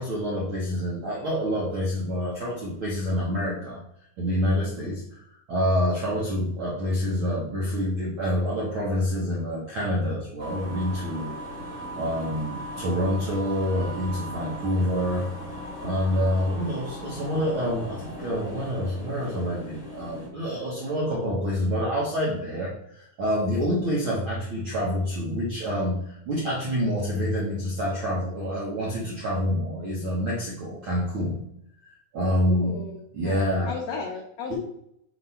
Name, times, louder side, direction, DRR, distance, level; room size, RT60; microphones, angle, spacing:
voice 1, 0.0-3.8 4.2-11.3 12.0-15.3 15.8-31.4 32.1-32.8 33.1-33.8 34.5-34.6, equal, 65° right, -5 dB, 1.2 m, -27 dB
sound 1, 10.4-20.3, equal, 25° left, 1.3 m, -38 dB
voice 2, 32.4-34.6, left 5 dB, 85° left, 1 dB, 1.5 m, -35 dB
5.8 x 3.0 x 5.5 m, 0.75 s
omnidirectional pair, 4.0 m